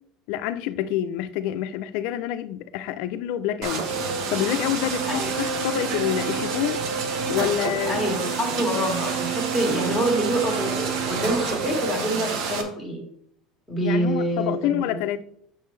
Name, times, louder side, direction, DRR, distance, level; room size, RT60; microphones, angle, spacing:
voice 1, 0.3-3.9 4.3-6.8 7.3-8.0 13.8-15.2, left 12 dB, 65° left, 0.4 m, -27 dB
sound 1, 3.6-12.6, right 5 dB, 55° right, 0.9 m, -28 dB
voice 2, 7.9-13.0 13.7-15.0, equal, ahead, 1.7 m, -26 dB
6.7 x 5.4 x 3.2 m
cardioid pair, 170°, 0 cm